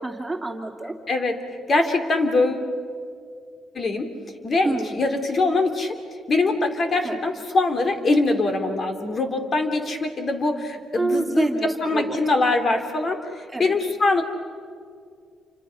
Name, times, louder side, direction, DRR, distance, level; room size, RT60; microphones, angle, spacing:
voice 1, 0.0-0.9 4.6-5.0 7.0-7.2 10.9-12.2 13.5-13.8, right 2 dB, 10° right, 1 dB, 3.1 m, -27 dB
voice 2, 1.1-1.4 1.7-2.7 3.7-4.0 4.4-5.9 6.3-11.5 11.8-13.2 13.6-14.2, left 2 dB, 45° left, 6 dB, 3.0 m, -22 dB
29.0 x 26.0 x 5.9 m, 2.3 s
cardioid pair, 90°, 0 cm